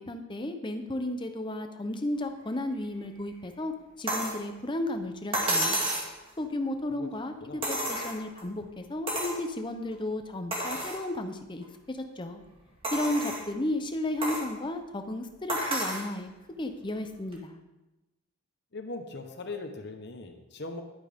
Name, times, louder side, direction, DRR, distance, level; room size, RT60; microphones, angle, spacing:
voice 1, 0.1-5.8 6.4-12.4 12.9-16.3 16.6-17.6, left 1 dB, 20° left, 7 dB, 0.7 m, -33 dB
sound 1, 4.1-4.4 5.3-6.1 7.6-8.4 9.1-9.4 9.9-10.0 10.5-11.0 11.6-11.7 12.8-13.5 14.2-14.5 15.5-16.1 17.3-17.4, right 1 dB, 25° right, 2.0 m, -30 dB
voice 2, 18.7-20.8, left 3 dB, 50° left, 5 dB, 1.1 m, -40 dB
11.0 x 8.9 x 3.6 m, 1.0 s
head